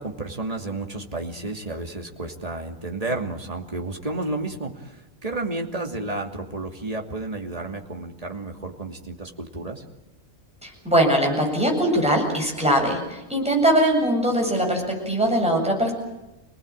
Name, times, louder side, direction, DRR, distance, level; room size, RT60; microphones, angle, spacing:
voice 1, 0.0-5.0 5.2-9.8, right 2 dB, 30° right, 2 dB, 2.8 m, -31 dB
voice 2, 10.6-15.9, right 1 dB, 5° right, 0 dB, 8.0 m, -21 dB
28.5 x 19.0 x 8.9 m, 1.0 s
omnidirectional pair, 1.4 m